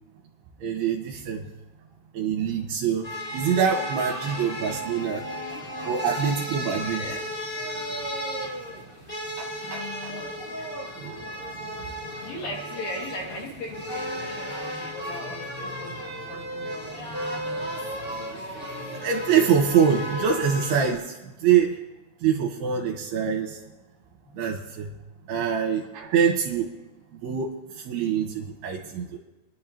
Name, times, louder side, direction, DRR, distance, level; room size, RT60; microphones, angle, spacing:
voice 1, 0.6-1.5 2.1-3.1 3.3-5.2 5.8-7.0 9.4-10.1 11.0-11.2 19.0-21.8 22.2-23.6 24.4-24.9 25.3-26.7 27.2-29.2, right 7 dB, 75° right, 1 dB, 3.1 m, -25 dB
sound 1, 3.0-20.9, equal, 25° left, 2.0 m, -34 dB
voice 2, 6.6-7.2 9.6-10.4 12.2-17.2 24.3-24.6, left 1 dB, 60° left, -1 dB, 4.0 m, -39 dB
29.0 x 11.0 x 3.0 m, 1.1 s
omnidirectional pair, 4.8 m